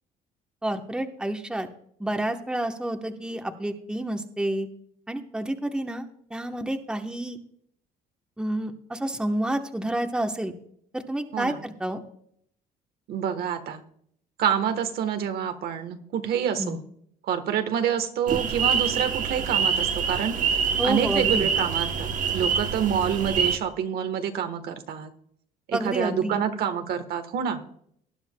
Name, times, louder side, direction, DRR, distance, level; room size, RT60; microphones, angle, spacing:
voice 1, 0.6-1.7 2.0-4.7 5.1-7.4 8.4-10.5 10.9-12.0 16.6-16.8 20.8-21.5 25.7-26.4, right 1 dB, 5° right, 5 dB, 1.0 m, -29 dB
voice 2, 13.1-13.8 14.4-16.8 17.2-20.4 20.8-25.1 25.7-27.6, right 8 dB, 70° right, 8 dB, 1.2 m, -27 dB
sound 1, 18.3-23.6, right 6 dB, 50° right, 1.0 m, -26 dB
19.0 x 10.5 x 2.2 m, 0.67 s
cardioid pair, 110°, 17 cm